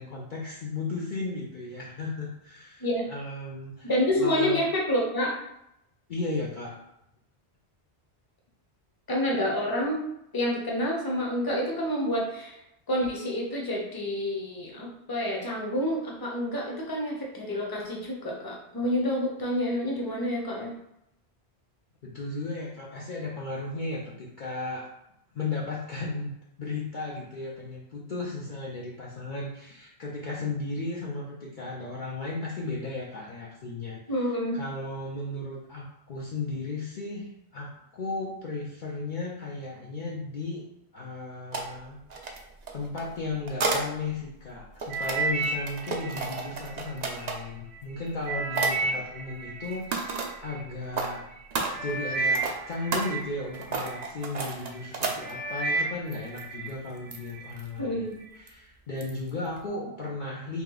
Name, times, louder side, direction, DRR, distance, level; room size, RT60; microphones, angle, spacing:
voice 1, 0.0-3.9 4.2-4.6 6.1-6.8 22.0-24.9 25.3-26.3 26.6-40.6 40.9-42.0 42.7-51.3 51.8-58.1 58.3-60.6, left 3 dB, 50° left, -4 dB, 0.7 m, -35 dB
voice 2, 3.8-5.3 9.1-10.0 10.3-12.6 12.9-20.7 34.1-34.6 57.8-58.2, equal, 20° left, -2 dB, 0.8 m, -28 dB
sound 1, 41.5-41.7 42.1-43.9 44.6-47.5 48.1-48.3 48.5-48.7 49.6-50.3 50.8-51.1 51.5-55.6 56.1-56.4 56.7-56.8 57.1-57.7 58.5-58.6 59.0-59.3 59.6-59.7, right 3 dB, 50° right, 0.6 m, -32 dB
sound 2, 44.9-47.2 47.8-50.6 51.3-51.4 51.7-54.1 54.6-54.9 55.2-56.7 57.1-57.5 58.1-58.2, right 3 dB, 75° right, 0.9 m, -32 dB
3.3 x 3.0 x 3.8 m, 0.81 s
omnidirectional pair, 1.1 m